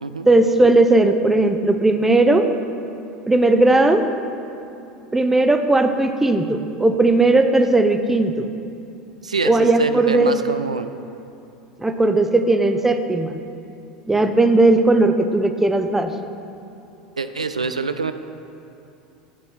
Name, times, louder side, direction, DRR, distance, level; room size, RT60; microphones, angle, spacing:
voice 1, 0.3-2.5 3.3-4.1 5.1-8.5 9.4-10.4 11.8-13.3 14.1-16.1, right 2 dB, 10° right, 8 dB, 0.6 m, -17 dB
voice 2, 9.2-10.9 17.2-18.1, right 4 dB, 80° right, 10 dB, 0.4 m, -25 dB
11.0 x 8.1 x 4.2 m, 2.7 s
figure-of-eight pair, 75°, 4 cm